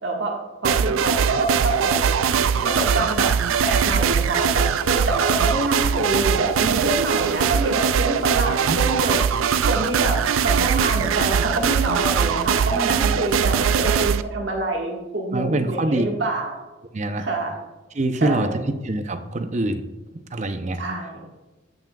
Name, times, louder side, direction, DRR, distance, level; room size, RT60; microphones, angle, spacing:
voice 1, 0.0-2.3 2.6-3.4 3.6-9.2 9.7-16.6 17.2-17.5 18.2-18.6 20.8-21.3, right 2 dB, 65° right, 0 dB, 1.5 m, -26 dB
sound 1, 0.6-14.2, right 7 dB, 90° right, 0.4 m, -21 dB
voice 2, 15.3-16.0 16.9-17.3 17.9-18.5 18.8-19.8 20.3-20.8, right 2 dB, 35° right, 8 dB, 0.5 m, -24 dB
15.5 x 5.8 x 2.3 m, 1.1 s
head